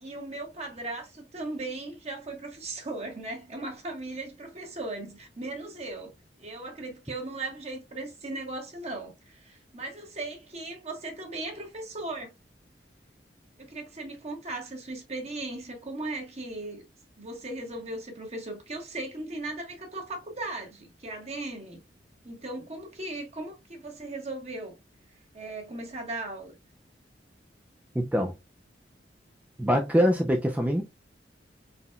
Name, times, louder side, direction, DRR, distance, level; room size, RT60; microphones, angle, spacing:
voice 1, 0.0-6.1 6.4-12.3 13.6-16.8 17.2-21.8 22.2-24.7 25.3-26.5, right 2 dB, 40° right, 1.3 m, -37 dB
voice 2, 27.9-28.3 29.6-30.8, equal, 10° right, 0.4 m, -24 dB
4.1 x 4.0 x 2.2 m
head